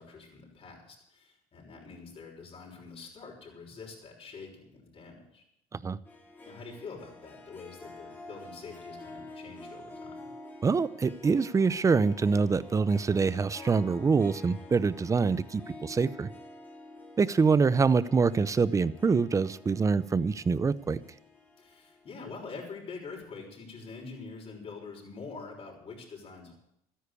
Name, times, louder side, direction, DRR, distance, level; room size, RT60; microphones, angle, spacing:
voice 1, 0.0-5.4 6.4-10.3 21.6-26.5, left 4 dB, 40° left, -1 dB, 5.9 m, -45 dB
Harp, 6.1-22.8, left 2 dB, 10° left, 3.3 m, -49 dB
voice 2, 10.6-16.3 17.2-21.0, right 5 dB, 20° right, 17 dB, 0.7 m, -25 dB
13.5 x 10.0 x 8.4 m, 0.77 s
cardioid pair, 110°, 15 cm